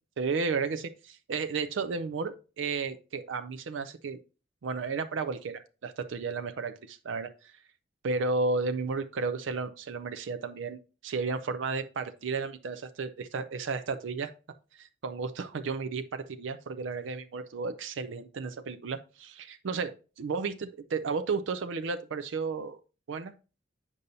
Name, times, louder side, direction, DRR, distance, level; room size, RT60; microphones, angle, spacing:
voice 1, 0.2-4.2 4.6-7.5 8.0-14.3 14.7-22.8 23.1-23.3, right 4 dB, 75° right, 11 dB, 0.4 m, -33 dB
8.3 x 5.3 x 2.6 m, 0.33 s
head